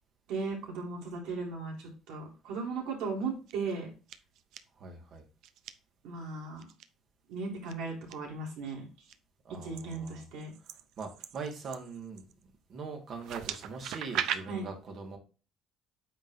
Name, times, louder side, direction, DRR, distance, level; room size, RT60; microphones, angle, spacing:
voice 1, 0.3-3.9 6.0-6.7 7.3-8.8 9.6-10.5 14.5-14.7, right 4 dB, 85° right, -2 dB, 3.8 m, -37 dB
sound 1, 3.2-3.7 4.1-4.6 5.4-5.7 6.6-6.8 7.7-8.1 8.7-9.1 9.7-12.4 13.1-14.4, right 10 dB, 65° right, 0.7 m, -39 dB
voice 2, 4.8-5.2 9.4-10.2 11.0-12.2 12.7-15.2, right 4 dB, 40° right, 3 dB, 2.0 m, -41 dB
8.9 x 5.5 x 2.8 m, 0.34 s
cardioid pair, 165°, 0 cm